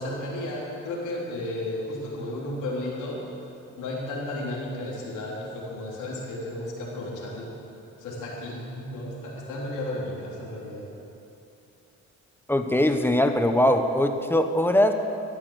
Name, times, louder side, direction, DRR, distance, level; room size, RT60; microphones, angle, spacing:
voice 1, 0.0-3.3 3.7-7.5 8.0-10.9, left 1 dB, 90° left, -4 dB, 3.5 m, -33 dB
voice 2, 12.5-14.9, left 1 dB, 5° left, 6 dB, 1.0 m, -21 dB
14.5 x 8.9 x 8.1 m, 2.7 s
cardioid pair, 90°, 30 cm